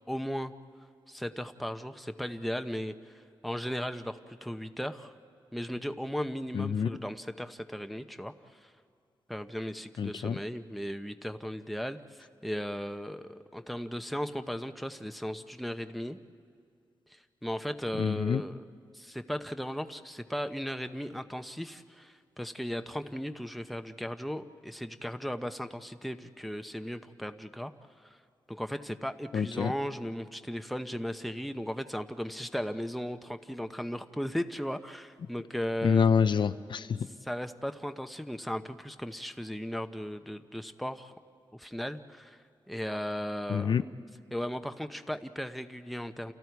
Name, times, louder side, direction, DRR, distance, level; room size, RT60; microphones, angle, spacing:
voice 1, 0.1-0.5 1.1-5.1 5.5-8.7 9.3-16.2 17.1-18.6 18.9-27.7 28.0-28.2 28.5-36.0 37.3-41.1 41.5-43.7 44.3-46.3, equal, ahead, 7 dB, 0.9 m, -36 dB
voice 2, 6.5-7.0 10.0-10.4 18.0-18.4 29.3-29.7 35.8-37.1 43.5-43.8, left 6 dB, 65° left, 11 dB, 0.6 m, -27 dB
29.5 x 29.0 x 4.7 m, 2.3 s
cardioid pair, 80°, 9 cm